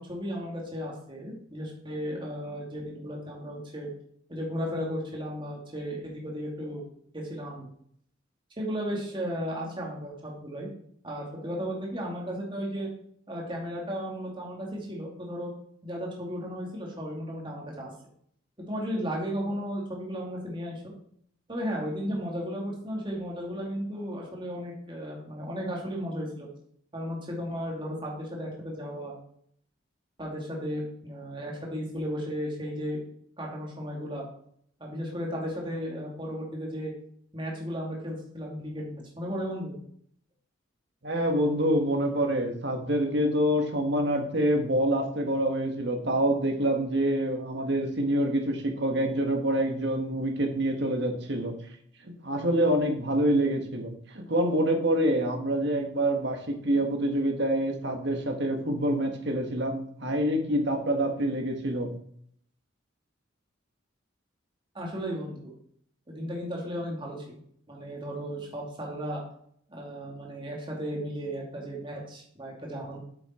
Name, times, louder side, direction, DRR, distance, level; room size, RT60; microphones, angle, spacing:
voice 1, 0.0-3.9 4.3-6.8 7.1-7.7 8.6-10.7 11.0-12.9 13.3-15.5 15.8-17.9 18.7-20.9 21.5-26.5 26.9-29.1 30.2-33.0 33.4-34.2 34.8-36.9 37.3-39.8 64.7-65.5 66.1-67.2 67.7-69.2 69.7-73.0, equal, 25° right, -2 dB, 2.3 m, -35 dB
voice 2, 41.0-51.5 52.0-61.9, right 1 dB, 60° right, 3 dB, 1.7 m, -26 dB
8.6 x 7.0 x 4.4 m, 0.65 s
head